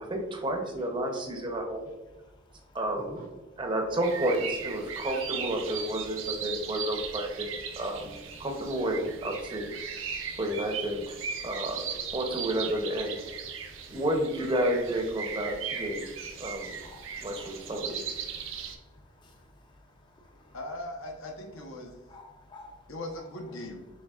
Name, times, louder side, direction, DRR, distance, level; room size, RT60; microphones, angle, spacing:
voice 1, 0.0-1.9 2.7-3.3 3.6-9.7 10.4-11.2 11.4-13.2 13.9-16.1 16.4-16.8 17.2-18.0, right 1 dB, 25° right, 2 dB, 0.6 m, -31 dB
sound 1, 4.0-18.8, right 7 dB, 70° right, 0.5 m, -38 dB
voice 2, 16.8-17.8 18.3-18.4 19.2-19.4 20.2-20.5 22.1-22.9, left 1 dB, 20° left, 1 dB, 0.4 m, -51 dB
voice 3, 20.5-22.0 22.9-23.9, left 1 dB, 80° left, 1 dB, 0.9 m, -39 dB
6.4 x 3.3 x 2.4 m, 1.2 s
head